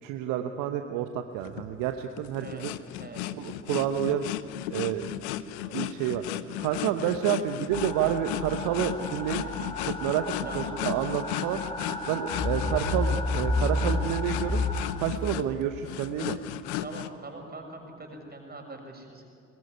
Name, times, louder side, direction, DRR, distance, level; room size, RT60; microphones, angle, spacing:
voice 1, 0.0-2.7 3.4-4.3 4.7-5.1 5.7-6.2 6.6-11.6 12.1-14.6 15.0-16.4, right 11 dB, 60° right, 7 dB, 1.1 m, -29 dB
sound 1, 1.4-17.1, left 12 dB, 65° left, 0.9 m, -35 dB
sound 2, 7.7-14.9, left 2 dB, 15° left, 4.5 m, -31 dB
voice 2, 16.8-19.3, right 2 dB, 25° right, 2 dB, 6.7 m, -43 dB
22.5 x 21.0 x 9.9 m, 2.4 s
figure-of-eight pair, 50°, 36 cm